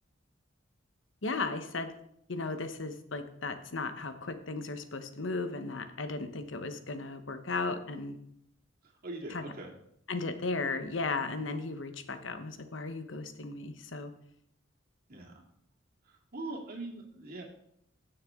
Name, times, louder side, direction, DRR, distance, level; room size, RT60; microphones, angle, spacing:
voice 1, 1.2-1.9 2.3-8.2 9.3-9.5 10.1-14.1, left 3 dB, 70° left, 9 dB, 1.0 m, -36 dB
voice 2, 8.8-9.7 15.1-15.4 16.0-17.4, right 2 dB, 50° right, 0 dB, 2.2 m, -42 dB
16.0 x 6.7 x 3.7 m, 0.73 s
head